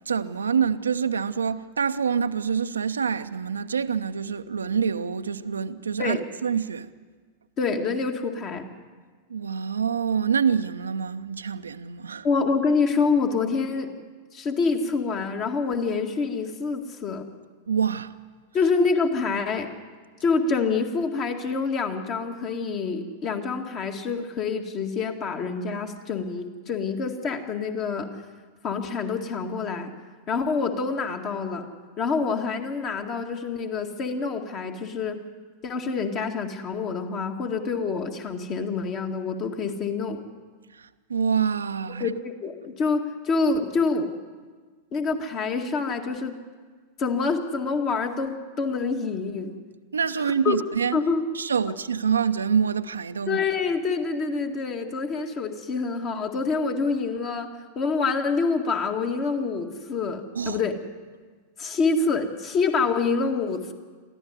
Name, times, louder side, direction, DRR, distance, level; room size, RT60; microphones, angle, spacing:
voice 1, 0.1-6.9 9.3-12.3 17.7-18.1 40.7-42.1 49.9-51.0 51.3-53.4 60.3-60.6, right 6 dB, 75° right, 0.7 m, -26 dB
voice 2, 7.6-8.7 12.2-13.9 14.3-17.3 18.5-19.7 20.2-28.1 28.6-29.9 30.3-31.7 32.0-35.2 35.6-40.2 42.0-44.1 44.9-46.4 47.0-49.5 50.3-50.6 50.9-51.3 53.3-60.7 61.6-63.7, left 4 dB, 35° left, 2.0 m, -26 dB
23.0 x 15.0 x 9.4 m
figure-of-eight pair, 90°, 0 cm